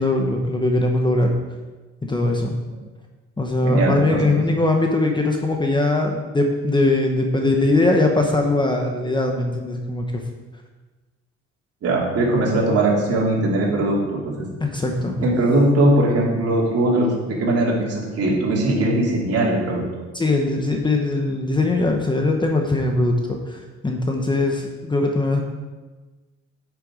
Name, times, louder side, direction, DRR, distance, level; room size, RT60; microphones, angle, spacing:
voice 1, 0.0-1.3 2.0-2.5 3.4-10.2 14.6-15.3 20.1-25.4, left 2 dB, 15° left, 2 dB, 1.0 m, -21 dB
voice 2, 3.6-4.3 11.8-14.5 15.2-19.8, right 1 dB, 55° right, -3 dB, 3.0 m, -20 dB
9.0 x 6.9 x 4.9 m, 1.3 s
cardioid pair, 115°, 30 cm